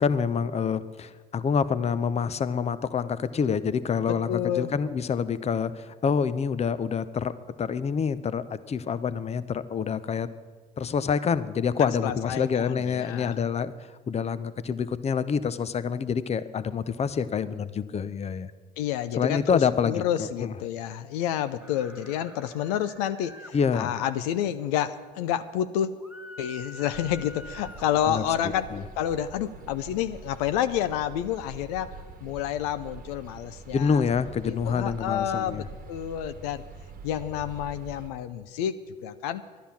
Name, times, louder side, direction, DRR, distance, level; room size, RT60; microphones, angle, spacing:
voice 1, 0.0-7.3 7.6-10.3 10.8-13.7 14.1-18.5 19.2-20.5 23.5-23.9 28.1-28.8 33.7-35.7, left 6 dB, 30° left, 15 dB, 0.7 m, -27 dB
voice 2, 4.1-4.7 11.8-13.4 18.8-25.9 26.4-28.7 29.0-34.0 34.5-36.6 37.0-38.7 39.0-39.4, left 10 dB, 80° left, 11 dB, 0.6 m, -29 dB
sound 1, 21.6-23.5 26.0-27.9, left 1 dB, 5° right, 2.0 m, -46 dB
sound 2, 26.9-38.1, right 5 dB, 45° right, 1.3 m, -45 dB
11.5 x 10.0 x 7.2 m, 1.4 s
hypercardioid pair, 70°, 20 cm